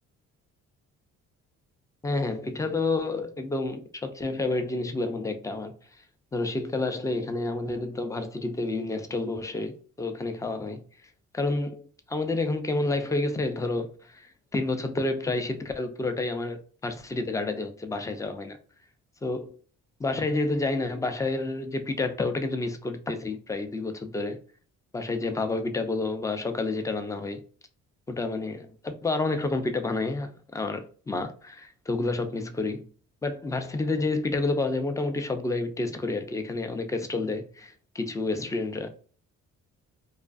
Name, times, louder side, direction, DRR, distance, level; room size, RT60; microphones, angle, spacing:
voice 1, 2.0-5.7 6.3-10.8 11.3-14.3 14.5-18.6 19.2-19.6 20.0-24.4 24.9-27.4 28.1-32.9 33.2-38.9, left 2 dB, 10° left, 0.4 m, -29 dB
2.3 x 2.3 x 2.4 m
cardioid pair, 90°, 30 cm